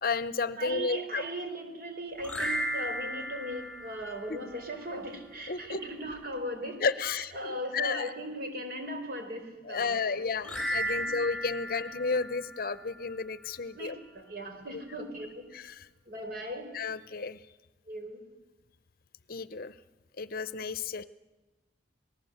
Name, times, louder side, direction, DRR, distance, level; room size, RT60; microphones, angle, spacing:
voice 1, 0.0-1.2 4.3-4.5 5.5-5.8 6.8-8.1 9.6-14.0 14.7-14.8 15.5-15.8 16.7-17.4 19.3-19.7 20.2-21.0, left 4 dB, 55° left, 16 dB, 0.7 m, -32 dB
voice 2, 0.6-6.8 7.1-10.5 10.9-11.1 13.7-15.4 16.1-16.7 17.9-18.2, equal, 55° right, 4 dB, 4.6 m, -38 dB
sound 1, 2.2-4.7 10.4-13.0, equal, 5° left, 7.3 m, -35 dB
26.5 x 19.0 x 8.0 m, 1.2 s
head